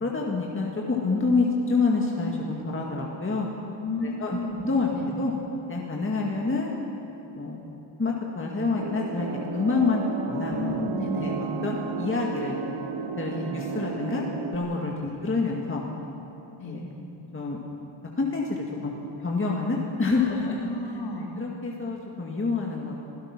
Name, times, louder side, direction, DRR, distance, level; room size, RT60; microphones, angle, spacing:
voice 1, 0.0-3.5 4.0-4.4 4.6-4.9 5.2-5.3 5.7-6.7 7.3-7.6 8.0-10.6 11.2-11.3 11.6-12.6 13.2-14.2 14.5-15.8 16.6-16.8 17.3-17.6 18.2-18.9 19.2-20.6 21.4-22.9, left 3 dB, 25° left, -1 dB, 2.0 m, -27 dB
voice 2, 3.8-4.7 5.0-5.1 10.5-11.4 13.3-13.5 15.0-15.2 16.6-16.8 20.2-21.3, left 2 dB, 60° left, -2 dB, 4.0 m, -33 dB
sound 1, 8.7-14.6, right 5 dB, 60° right, 1.3 m, -33 dB
27.0 x 16.5 x 6.0 m, 2.9 s
wide cardioid pair, 140°, 50 cm